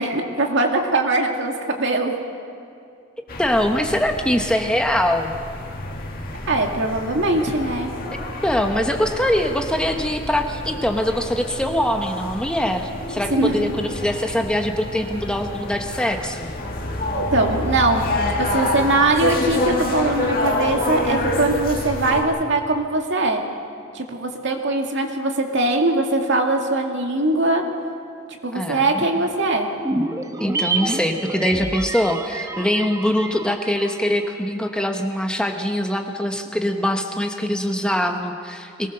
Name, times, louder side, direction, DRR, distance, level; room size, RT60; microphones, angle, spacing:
voice 1, 0.0-2.1 6.5-7.9 13.3-13.6 17.1-23.4 23.9-27.6 28.4-29.7, right 2 dB, 65° right, 2 dB, 2.3 m, -21 dB
sound 1, 3.3-22.2, left 2 dB, 50° left, 2.2 m, -28 dB
voice 2, 3.4-5.3 8.1-16.5 28.5-29.2 30.4-38.9, equal, 5° left, 4 dB, 1.0 m, -23 dB
sound 2, 29.8-34.3 34.5-34.6, right 3 dB, 15° right, 1.1 m, -28 dB
22.5 x 19.0 x 6.7 m, 2.5 s
head